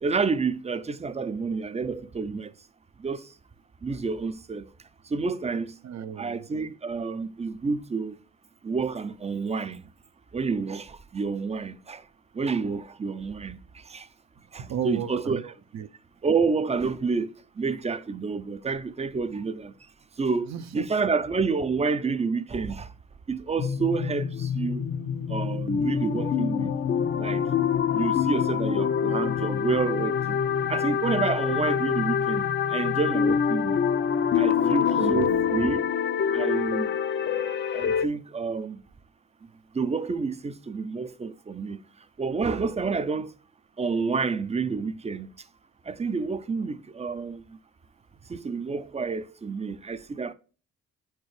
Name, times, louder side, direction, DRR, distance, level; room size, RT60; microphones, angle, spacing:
voice 1, 0.0-2.5 3.0-3.3 3.8-4.7 5.1-5.7 6.2-8.2 8.6-9.9 10.3-12.0 12.3-13.6 13.8-14.1 14.5-15.4 16.2-19.7 20.2-20.5 20.7-22.9 23.3-24.8 25.3-26.7 27.2-27.4 27.9-30.4 30.7-33.8 34.3-35.8 36.3-36.9 37.7-38.8 39.7-41.8 42.2-43.3 43.8-45.3 45.9-47.4 48.3-50.3, right 4 dB, 20° right, 0.5 m, -29 dB
voice 2, 5.8-6.4 13.1-13.2 14.6-15.9 20.4-20.9 34.8-35.5, right 8 dB, 60° right, 0.7 m, -35 dB
sound 1, 23.6-38.1, left 7 dB, 40° left, 0.5 m, -26 dB
8.5 x 4.5 x 3.2 m
cardioid pair, 90°, 30 cm